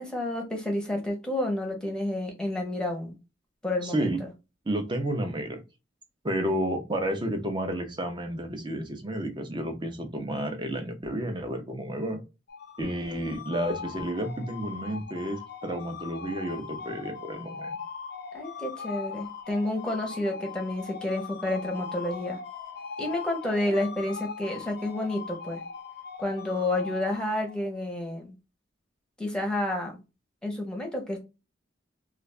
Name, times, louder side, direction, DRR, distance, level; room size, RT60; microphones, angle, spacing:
voice 1, 0.0-3.2 3.6-4.3 18.3-22.4 23.0-25.6 26.2-28.3 29.2-30.0 30.4-31.2, left 1 dB, 5° left, 0.8 m, -30 dB
voice 2, 3.8-4.2 4.7-5.6 6.2-12.2 12.8-17.8, right 1 dB, 25° right, 0.6 m, -31 dB
sound 1, 12.5-27.8, left 5 dB, 60° left, 0.5 m, -40 dB
2.4 x 2.4 x 3.1 m
head